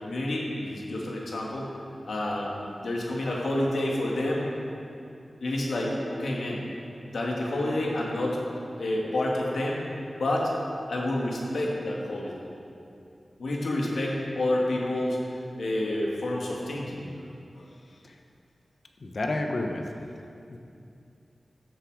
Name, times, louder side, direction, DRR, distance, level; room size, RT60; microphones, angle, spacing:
voice 1, 0.0-1.7 2.0-4.5 5.4-6.6 7.1-8.4 8.8-9.8 10.2-10.5 10.9-12.5 13.4-15.2 15.6-17.0 17.5-17.6, left 1 dB, 90° left, -3 dB, 2.0 m, -29 dB
voice 2, 19.0-19.8 20.5-20.6, left 2 dB, 60° left, 3 dB, 1.1 m, -31 dB
13.0 x 7.6 x 4.9 m, 2.6 s
wide cardioid pair, 75°, 0 cm